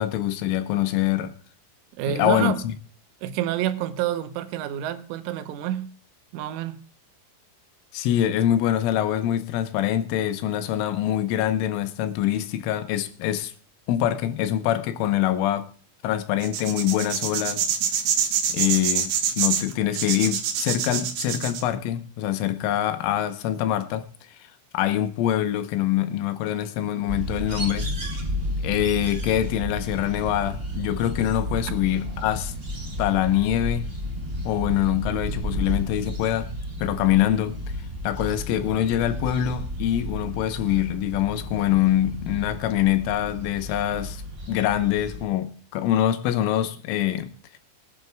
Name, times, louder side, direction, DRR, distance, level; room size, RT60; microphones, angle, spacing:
voice 1, 0.0-1.3 2.1-2.7 7.9-13.5 13.9-15.7 16.0-17.6 18.5-24.1 24.7-27.9 28.6-32.5 33.0-33.9 34.5-36.5 36.8-37.6 38.0-44.2 44.5-47.3, left 12 dB, 85° left, 3.5 m, -24 dB
voice 2, 2.0-2.6 3.2-5.9 6.3-6.8, right 11 dB, 85° right, 3.4 m, -28 dB
sound 1, 16.4-21.6, right 8 dB, 70° right, 3.2 m, -25 dB
sound 2, 27.1-45.2, equal, 30° right, 1.0 m, -32 dB
23.5 x 11.0 x 2.3 m
omnidirectional pair, 5.5 m